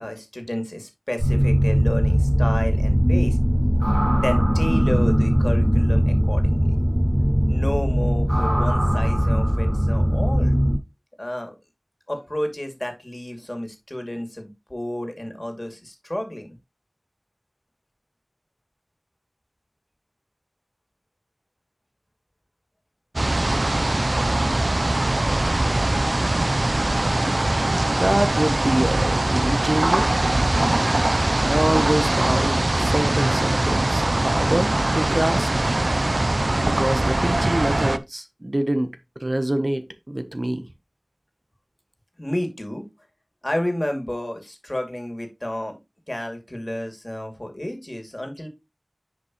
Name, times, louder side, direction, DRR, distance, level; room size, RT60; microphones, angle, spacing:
voice 1, 0.0-3.4 4.1-6.8 7.5-10.6 11.2-11.5 12.1-16.6 42.2-42.9 43.4-45.8 46.1-48.5, left 1 dB, 40° left, 2.4 m, -30 dB
sound 1, 1.2-10.8, equal, 15° right, 3.7 m, -20 dB
sound 2, 23.2-38.0, right 2 dB, 70° right, 0.5 m, -21 dB
voice 2, 27.9-30.1 31.4-35.5 36.6-39.0 39.2-40.6, right 1 dB, 50° right, 0.9 m, -25 dB
10.0 x 5.3 x 3.0 m
wide cardioid pair, 40°, 0 cm